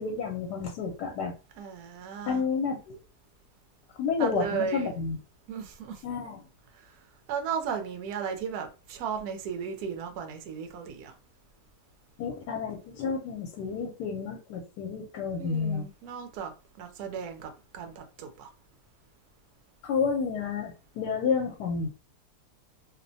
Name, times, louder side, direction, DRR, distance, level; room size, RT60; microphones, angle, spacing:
voice 1, 0.0-1.3 2.3-3.0 4.0-5.2 6.0-6.4 12.2-15.9 19.8-21.9, left 5 dB, 80° left, 1.2 m, -30 dB
voice 2, 1.6-2.4 4.2-4.9 5.5-6.0 6.8-6.9 7.3-11.1 15.3-16.5 16.8-18.5, right 7 dB, 70° right, 1.1 m, -35 dB
2.9 x 2.1 x 2.6 m
omnidirectional pair, 1.8 m